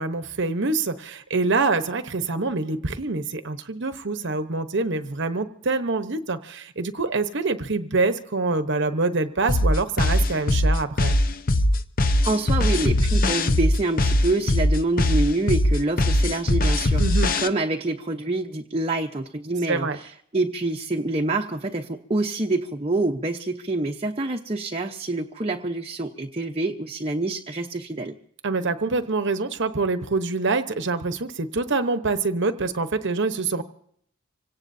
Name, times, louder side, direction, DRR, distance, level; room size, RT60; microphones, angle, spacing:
voice 1, 0.0-11.2 17.0-17.3 19.7-20.0 28.4-33.6, right 3 dB, 55° right, 9 dB, 1.0 m, -25 dB
sound 1, 9.5-17.5, left 1 dB, 40° left, 0.8 m, -20 dB
voice 2, 12.2-28.1, right 2 dB, 25° right, 2 dB, 0.9 m, -26 dB
26.0 x 18.0 x 2.7 m, 0.66 s
head